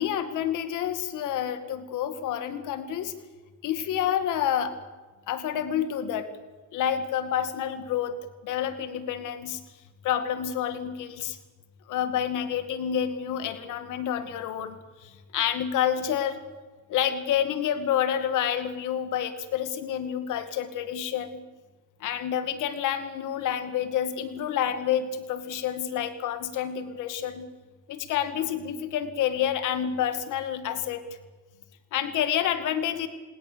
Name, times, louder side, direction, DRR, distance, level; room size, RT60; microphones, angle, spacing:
voice 1, 0.0-3.1 3.6-4.8 5.3-6.3 6.7-8.2 8.4-9.6 10.0-11.4 11.9-16.4 16.9-21.4 22.0-27.5 27.9-31.0 31.9-33.1, left 9 dB, 90° left, 10 dB, 2.2 m, -28 dB
27.0 x 20.0 x 6.9 m, 1.3 s
cardioid pair, 90°, 30 cm